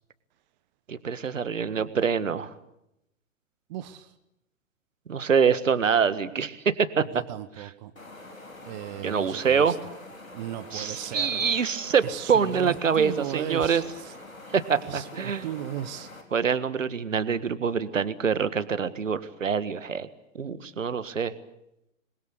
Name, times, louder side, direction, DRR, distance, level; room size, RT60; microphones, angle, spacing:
voice 1, 0.9-2.5 5.1-7.1 9.0-9.8 10.7-12.0 12.3-13.8 14.5-15.5 16.3-20.1 20.4-21.3, right 6 dB, 70° right, 14 dB, 1.7 m, -25 dB
voice 2, 3.7-4.1 7.1-7.9 8.6-9.8 10.3-11.5 12.0-14.1 14.9-16.1, right 12 dB, 35° right, 11 dB, 1.1 m, -36 dB
sound 1, 8.0-16.2, left 2 dB, 80° left, 4.4 m, -45 dB
27.0 x 21.5 x 8.2 m, 0.84 s
figure-of-eight pair, 115°, 40 cm